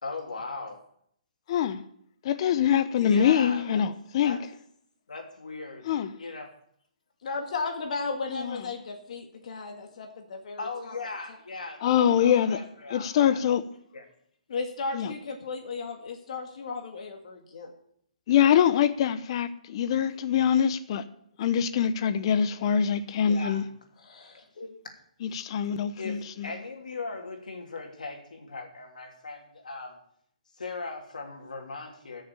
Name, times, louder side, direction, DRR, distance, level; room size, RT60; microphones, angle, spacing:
voice 1, 0.0-0.8 3.0-3.9 4.2-4.4 5.1-6.5 10.6-13.4 13.9-14.0 23.2-23.6 24.3-24.7 26.0-30.0 30.6-32.2, left 3 dB, 85° left, 3.0 m, -39 dB
voice 2, 1.5-1.8 2.2-4.4 5.9-6.1 8.3-8.6 11.8-12.6 12.9-13.6 14.9-15.1 18.3-21.0 21.4-23.6 25.2-26.5, left 8 dB, 45° left, 0.9 m, -24 dB
voice 3, 7.2-10.1 10.5-11.0 14.5-17.7 23.1-23.2 24.0-24.5, left 4 dB, 60° left, 2.0 m, -35 dB
15.0 x 6.7 x 6.9 m
hypercardioid pair, 145°, 4 cm